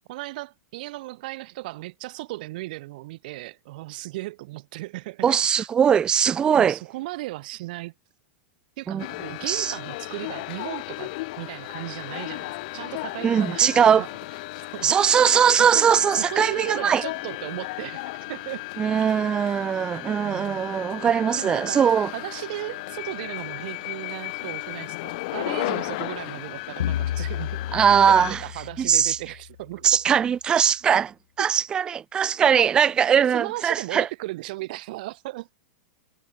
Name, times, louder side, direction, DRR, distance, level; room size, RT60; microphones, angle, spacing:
voice 1, 0.1-5.7 6.5-7.9 8.8-14.1 14.7-15.0 15.6-18.7 20.2-20.6 21.0-21.8 22.1-27.6 28.1-30.1 31.4-31.5 32.6-32.7 33.2-35.5, right 19 dB, 45° right, 6.2 m, -36 dB
voice 2, 5.2-6.8 8.9-9.0 9.5-9.7 13.2-14.0 14.8-17.0 18.8-22.1 27.7-28.4 28.8-29.2 29.8-34.1, right 8 dB, 10° right, 1.0 m, -20 dB
sound 1, 9.0-28.3, left 22 dB, 40° left, 1.2 m, -35 dB
sound 2, 26.8-29.5, left 11 dB, 85° left, 1.7 m, -31 dB
supercardioid pair, 175°, 7 cm